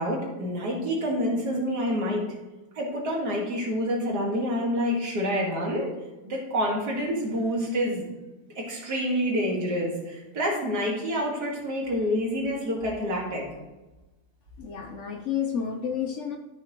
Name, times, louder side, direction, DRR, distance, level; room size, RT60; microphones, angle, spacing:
voice 1, 0.0-2.3 2.8-5.9 6.2-8.1 8.6-13.5, equal, 80° right, -2 dB, 2.4 m, -27 dB
voice 2, 14.6-16.4, left 8 dB, 60° left, 4 dB, 0.8 m, -30 dB
13.0 x 5.4 x 3.0 m, 1.1 s
omnidirectional pair, 1.7 m